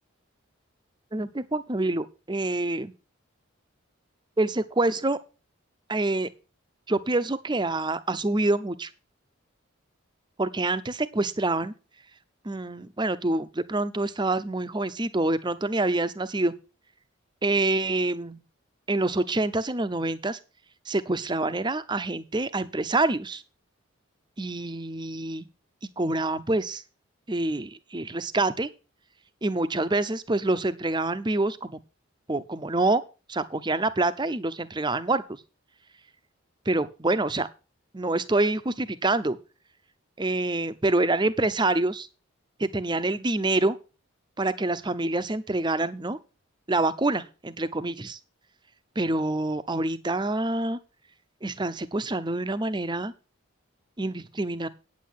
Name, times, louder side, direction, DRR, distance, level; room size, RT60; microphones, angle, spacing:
voice 1, 1.1-2.9 4.4-5.2 5.9-6.3 6.9-8.9 10.4-11.7 12.4-16.5 17.4-18.4 18.9-20.4 20.9-23.4 24.4-25.5 26.0-26.8 27.3-28.7 29.4-31.8 32.3-33.0 33.3-35.2 36.7-37.5 37.9-39.4 40.2-42.1 42.6-43.8 44.4-46.2 46.7-48.2 49.0-50.8 51.4-53.1 54.0-54.7, right 2 dB, 20° right, 13 dB, 0.7 m, -26 dB
9.1 x 8.5 x 5.9 m, 0.33 s
head